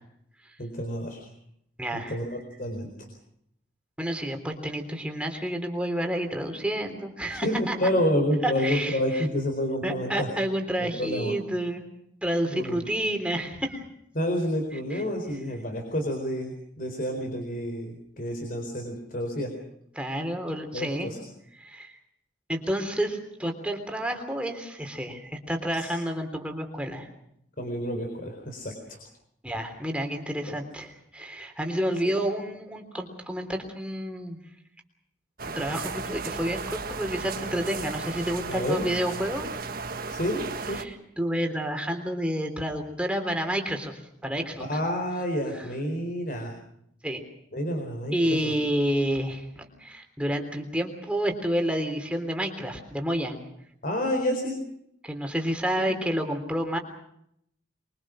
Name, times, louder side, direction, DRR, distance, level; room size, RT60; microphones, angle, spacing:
voice 1, 0.6-1.3 1.9-3.1 7.3-10.3 10.8-11.3 12.5-12.8 14.1-19.5 20.7-21.2 25.7-25.9 27.6-29.0 30.5-30.6 38.5-38.9 40.1-40.8 44.7-46.5 47.5-48.5 53.8-54.6 55.8-56.0, equal, 45° left, 4 dB, 4.4 m, -29 dB
voice 2, 1.8-2.2 4.0-7.8 8.4-9.3 9.8-11.9 12.2-13.8 14.9-15.0 20.0-21.1 21.6-21.9 22.5-27.1 29.4-34.4 35.6-39.5 40.7-43.9 44.2-44.6 47.0-47.2 48.1-53.4 55.0-56.8, equal, 5° right, 4 dB, 3.4 m, -29 dB
sound 1, 35.4-40.8, right 4 dB, 50° right, 1.6 m, -35 dB
24.5 x 23.5 x 6.4 m, 0.73 s
head